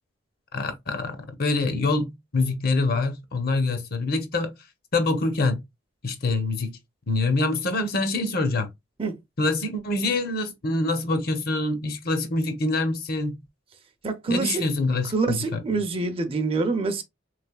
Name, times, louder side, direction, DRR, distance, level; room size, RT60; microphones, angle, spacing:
voice 1, 0.5-4.5 4.9-5.6 6.0-6.8 7.1-8.7 9.4-13.4 14.3-15.6, left 2 dB, 50° left, 0.8 m, -25 dB
voice 2, 14.0-14.6 15.1-17.0, right 3 dB, 30° right, 0.5 m, -26 dB
3.5 x 3.2 x 2.2 m
head